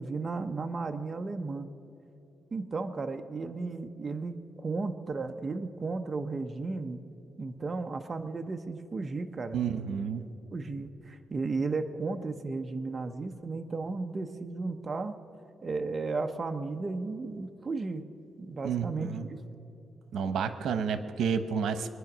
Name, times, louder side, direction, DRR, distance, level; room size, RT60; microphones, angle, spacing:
voice 1, 0.0-1.7 2.5-7.0 7.4-9.6 10.5-15.2 15.6-18.0 18.4-19.4, right 3 dB, 30° right, 6 dB, 0.6 m, -34 dB
voice 2, 9.5-10.3 18.6-19.3 20.1-21.9, right 6 dB, 90° right, 11 dB, 0.9 m, -30 dB
24.0 x 9.6 x 6.0 m, 2.9 s
wide cardioid pair, 160°, 0 cm